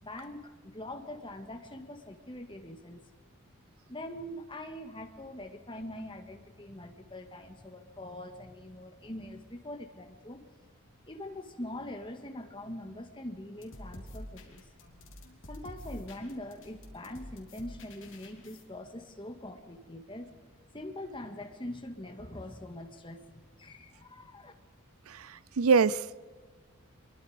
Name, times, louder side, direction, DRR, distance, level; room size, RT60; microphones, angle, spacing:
voice 1, 0.0-3.0 3.9-10.4 11.1-14.7 15.5-20.3 20.7-24.5, left 1 dB, 20° left, 1.9 m, -43 dB
sound 1, 13.5-18.6, left 1 dB, 60° left, 3.6 m, -48 dB
voice 2, 25.1-26.2, right 5 dB, 75° right, 0.5 m, -25 dB
25.0 x 22.5 x 5.1 m
head